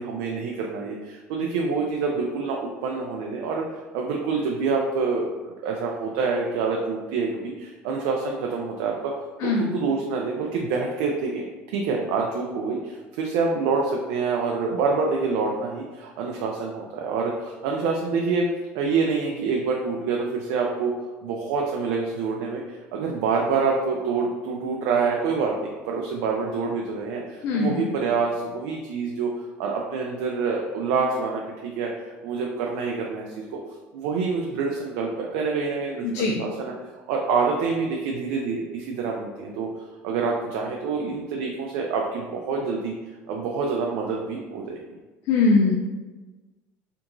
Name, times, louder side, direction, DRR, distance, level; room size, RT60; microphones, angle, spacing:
voice 1, 0.0-3.6 3.9-9.1 9.4-11.4 11.7-18.5 18.7-20.9 21.2-29.3 29.6-33.4 33.9-36.7 37.1-39.7 40.0-42.9 43.3-44.8, right 4 dB, 80° right, -1 dB, 0.4 m, -26 dB
voice 2, 9.4-9.7 27.4-27.9 36.1-36.4 45.3-45.8, left 3 dB, 55° left, 0 dB, 0.4 m, -21 dB
3.4 x 2.8 x 2.5 m, 1.2 s
cardioid pair, 135°, 6 cm